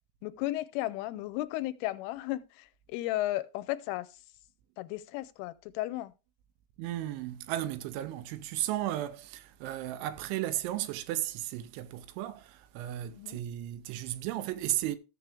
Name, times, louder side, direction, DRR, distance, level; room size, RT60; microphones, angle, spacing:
voice 1, 0.2-4.2 4.8-6.1 13.1-13.4, left 16 dB, 85° left, 3.1 m, -34 dB
voice 2, 6.8-15.0, right 13 dB, 80° right, 2.9 m, -35 dB
14.0 x 7.2 x 3.4 m
omnidirectional pair, 5.6 m